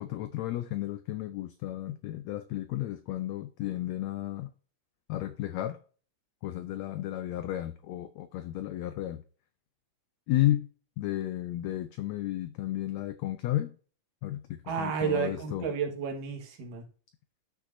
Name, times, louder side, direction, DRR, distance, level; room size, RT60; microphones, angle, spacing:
voice 1, 0.0-4.5 5.1-5.8 6.4-9.2 10.3-10.7 11.0-13.8 14.2-15.7, left 14 dB, 90° left, 1.5 m, -33 dB
voice 2, 14.7-16.9, right 6 dB, 80° right, 3.1 m, -31 dB
13.0 x 6.0 x 2.6 m
omnidirectional pair, 3.8 m